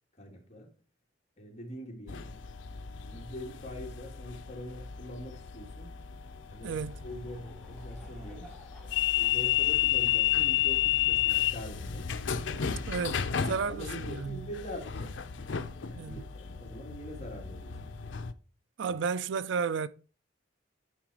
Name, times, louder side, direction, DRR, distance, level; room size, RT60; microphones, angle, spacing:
voice 1, 0.2-0.7 1.4-2.4 3.0-5.9 6.5-6.8 7.0-8.5 9.2-12.1 12.6-13.0 13.3-15.1 15.8-17.9 18.9-19.0, equal, 35° left, 2.2 m, -44 dB
sound 1, 2.1-18.3, left 10 dB, 75° left, 0.6 m, -32 dB
Laughter / Crowd, 6.5-12.3, right 1 dB, 5° left, 1.5 m, -58 dB
voice 2, 6.6-7.0 12.9-14.5 16.0-16.2 18.8-19.9, right 5 dB, 70° right, 0.4 m, -33 dB
9.8 x 4.0 x 4.7 m
head